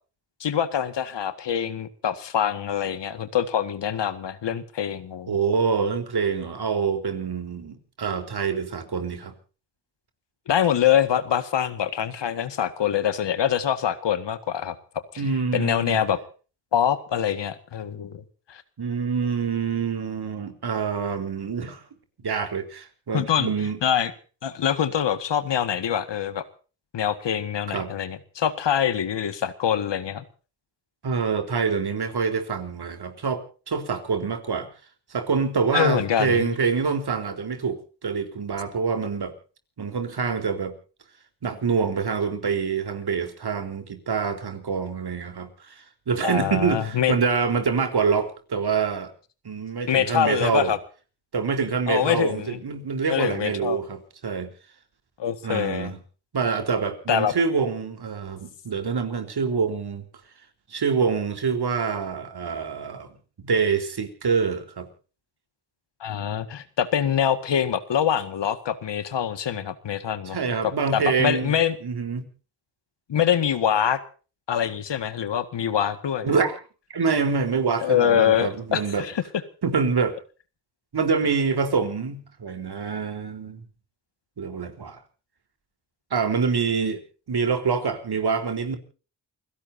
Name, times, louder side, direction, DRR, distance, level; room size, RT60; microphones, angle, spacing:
voice 1, 0.4-5.4 10.5-14.8 15.1-15.2 15.5-16.2 16.7-18.2 18.5-18.6 23.1-24.1 24.4-26.4 26.9-30.2 35.7-36.6 46.2-47.2 49.9-50.8 51.9-52.6 53.1-53.8 55.2-55.9 57.1-57.3 66.0-70.4 70.6-71.8 73.1-74.0 74.5-76.4 77.8-79.2, left 9 dB, 65° left, 12 dB, 1.9 m, -24 dB
voice 2, 5.3-9.3 15.2-16.0 18.8-21.8 22.2-23.8 27.7-27.9 31.0-34.7 35.1-39.3 39.8-40.7 41.4-45.7 46.1-49.1 49.4-50.7 51.3-54.5 55.4-56.0 56.3-60.0 60.7-63.1 63.4-64.9 70.3-71.5 71.8-72.3 76.2-76.6 76.9-79.0 79.6-80.2 80.9-83.6 84.4-85.0 86.1-87.0 87.3-88.8, right 5 dB, 55° right, 8 dB, 4.0 m, -26 dB
29.0 x 16.5 x 2.8 m, 0.37 s
supercardioid pair, 50°, 46 cm